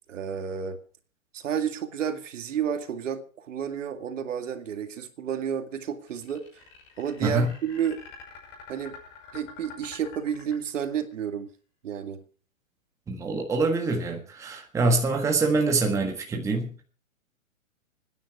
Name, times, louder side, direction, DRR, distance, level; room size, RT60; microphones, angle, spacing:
voice 1, 0.1-0.8 1.3-6.6 7.0-8.0 8.7-9.0 9.3-11.5 11.8-12.2, right 8 dB, 65° right, 8 dB, 2.3 m, -31 dB
sound 1, 6.1-11.1, left 5 dB, 25° left, 5.8 m, -46 dB
voice 2, 7.2-7.5 13.1-16.8, right 3 dB, 5° right, 3 dB, 1.5 m, -25 dB
25.5 x 10.0 x 4.8 m, 0.40 s
hypercardioid pair, 160°, 40 cm